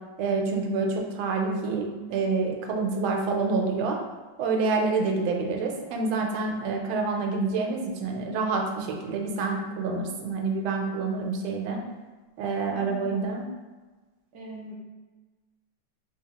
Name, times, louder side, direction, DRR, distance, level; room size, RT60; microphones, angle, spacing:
voice 1, 0.2-4.0 4.4-11.8 12.4-13.5, right 4 dB, 90° right, 2 dB, 1.4 m, -27 dB
voice 2, 12.7-13.5 14.3-14.8, right 1 dB, 70° right, -2 dB, 1.0 m, -42 dB
3.3 x 2.8 x 2.8 m, 1.3 s
omnidirectional pair, 2.2 m